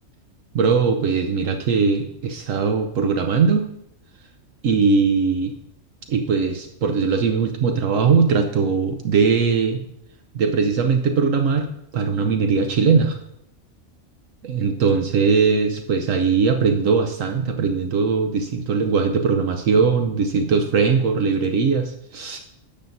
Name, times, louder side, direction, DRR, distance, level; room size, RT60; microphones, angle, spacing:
voice 1, 0.5-3.6 4.6-5.5 6.1-9.8 10.3-11.7 11.9-13.2 14.4-22.4, right 5 dB, 75° right, 6 dB, 1.1 m, -20 dB
11.5 x 8.7 x 2.7 m, 0.77 s
omnidirectional pair, 1.4 m